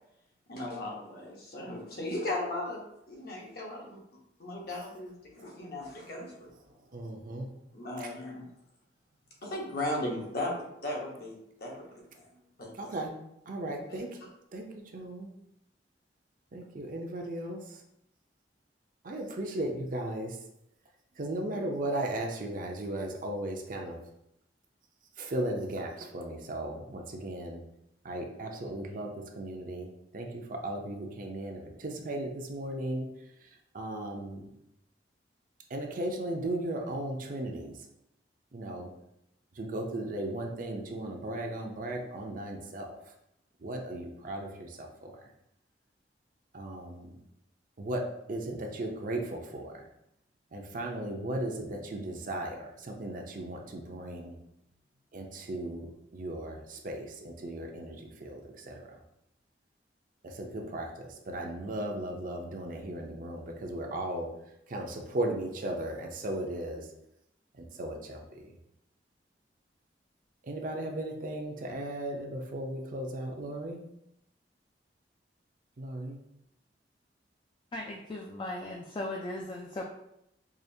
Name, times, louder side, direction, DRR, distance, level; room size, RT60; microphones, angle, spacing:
voice 1, 0.5-4.0 4.4-6.6 7.7-8.4 9.4-12.2 12.6-12.9 13.9-14.0, left 1 dB, 60° left, -2 dB, 1.0 m, -37 dB
voice 2, 6.9-7.5 8.0-8.1 12.8-13.1 13.5-14.1 14.5-15.3 16.5-17.6 19.0-20.4 21.2-24.0 25.2-27.6 28.0-33.1 33.7-34.5 35.7-37.7 38.5-38.9 39.6-42.9 43.6-45.1 46.5-47.1 47.8-49.9 50.5-54.3 55.1-59.0 60.2-64.3 64.7-66.9 67.6-68.6 70.4-73.8 75.8-76.2, right 1 dB, 50° right, 1 dB, 0.6 m, -36 dB
voice 3, 77.7-79.8, left 1 dB, 30° left, 0 dB, 0.3 m, -37 dB
4.8 x 2.5 x 2.7 m, 0.81 s
head